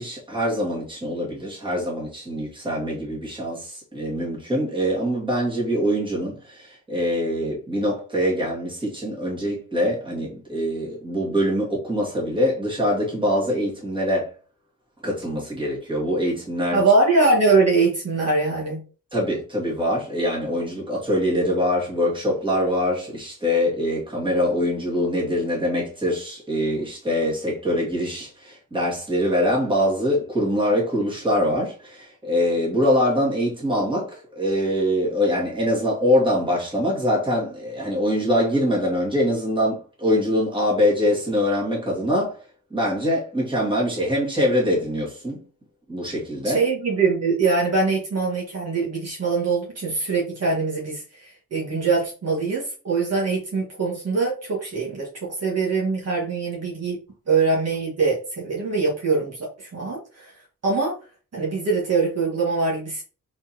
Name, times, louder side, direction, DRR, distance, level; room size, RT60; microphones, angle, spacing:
voice 1, 0.0-14.3 15.0-16.8 19.1-42.4 42.7-45.4 45.9-46.6, equal, 15° right, 2.2 m, -23 dB
voice 2, 16.7-18.8 46.4-57.0 57.3-60.3 60.6-61.0 61.3-63.0, right 4 dB, 50° right, 1.7 m, -23 dB
4.4 x 4.2 x 2.9 m
wide cardioid pair, 120°, 32 cm